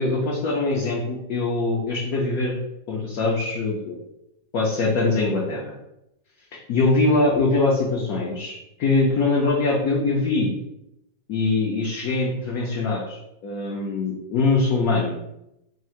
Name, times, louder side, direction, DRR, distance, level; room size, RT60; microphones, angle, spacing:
voice 1, 0.0-2.6 2.9-4.0 4.5-5.7 6.7-8.5 8.8-10.5 11.3-15.2, left 3 dB, 65° left, -3 dB, 0.9 m, -22 dB
3.7 x 2.4 x 4.3 m, 0.86 s
omnidirectional pair, 2.1 m